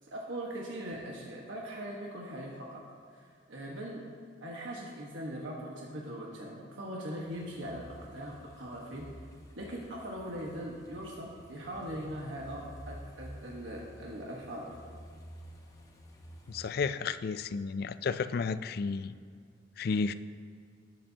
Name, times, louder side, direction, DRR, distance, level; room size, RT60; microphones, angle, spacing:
voice 1, 0.1-2.8 3.2-4.0 4.4-9.1 9.6-14.7, right 1 dB, 90° right, -3 dB, 1.4 m, -40 dB
sound 1, 7.3-16.7, equal, 20° left, 1.0 m, -51 dB
voice 2, 16.5-19.1 19.8-20.1, left 5 dB, 55° left, 13 dB, 0.3 m, -32 dB
18.0 x 7.5 x 2.9 m, 2.2 s
head